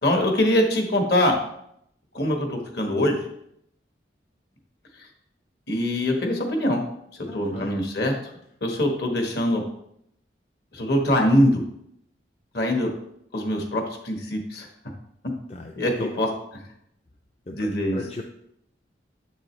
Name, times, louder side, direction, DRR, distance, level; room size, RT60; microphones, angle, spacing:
voice 1, 0.0-1.4 2.1-3.2 5.7-6.8 7.3-8.1 8.6-9.6 10.7-11.6 12.5-12.9 13.3-14.7 15.8-16.3 17.5-18.0, left 1 dB, 60° left, 3 dB, 1.3 m, -23 dB
voice 2, 7.3-7.7 15.5-15.7 16.0-16.1 17.5-18.2, left 2 dB, 35° left, 2 dB, 0.4 m, -36 dB
7.4 x 6.3 x 3.1 m, 0.75 s
head